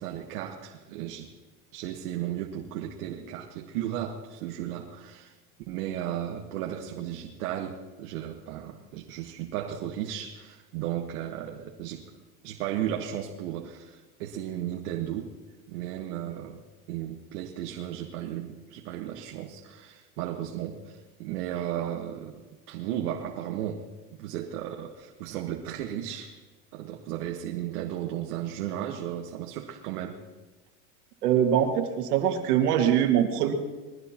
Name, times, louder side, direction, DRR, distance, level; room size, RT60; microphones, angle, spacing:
voice 1, 0.0-1.3 1.7-5.4 5.7-12.1 12.4-15.3 15.7-22.3 22.7-23.9 24.2-26.4 26.7-30.2, right 11 dB, 75° right, 1 dB, 1.6 m, -35 dB
voice 2, 31.2-33.5, right 9 dB, 90° right, 4 dB, 2.2 m, -23 dB
22.0 x 16.0 x 3.0 m, 1.3 s
supercardioid pair, 125°, 45 cm